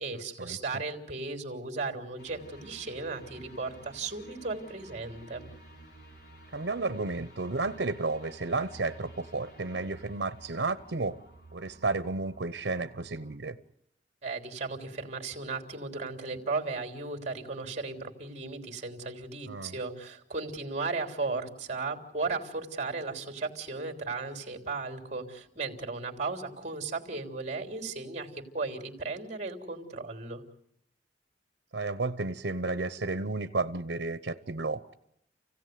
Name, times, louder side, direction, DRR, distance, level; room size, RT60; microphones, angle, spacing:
voice 1, 0.0-5.5 14.2-30.4, right 3 dB, 40° right, 4 dB, 3.4 m, -36 dB
sound 1, 2.2-13.4, right 1 dB, 65° left, 4.3 m, -52 dB
voice 2, 6.5-11.2 11.5-13.6 19.5-19.7 31.7-34.9, right 3 dB, 85° right, 11 dB, 0.9 m, -32 dB
28.5 x 16.5 x 9.4 m, 0.79 s
head